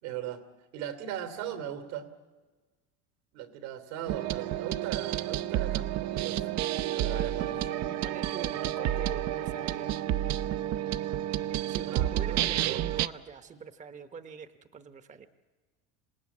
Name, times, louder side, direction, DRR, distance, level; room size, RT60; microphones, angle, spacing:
voice 1, 0.0-0.4 0.7-2.1 3.3-6.6 6.9-7.8 11.8-12.9, right 10 dB, 80° right, 9 dB, 3.1 m, -39 dB
sound 1, 4.1-13.1, right 12 dB, 50° right, 0.7 m, -30 dB
voice 2, 7.8-10.0 11.7-15.3, right 6 dB, 20° right, 11 dB, 1.0 m, -44 dB
27.0 x 18.5 x 8.5 m, 1.3 s
supercardioid pair, 125°, 34 cm